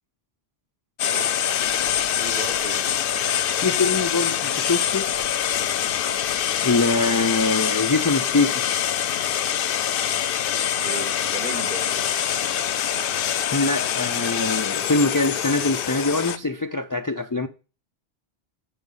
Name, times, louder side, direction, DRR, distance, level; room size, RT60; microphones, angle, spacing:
sound 1, 1.0-16.4, left 10 dB, 65° left, 0.7 m, -24 dB
voice 1, 1.1-1.4 2.1-4.0 10.7-12.1, right 3 dB, 50° right, 1.1 m, -37 dB
voice 2, 3.6-5.0 6.6-8.6 13.5-17.5, left 3 dB, 30° left, 0.4 m, -23 dB
10.0 x 5.3 x 5.3 m
omnidirectional pair, 1.1 m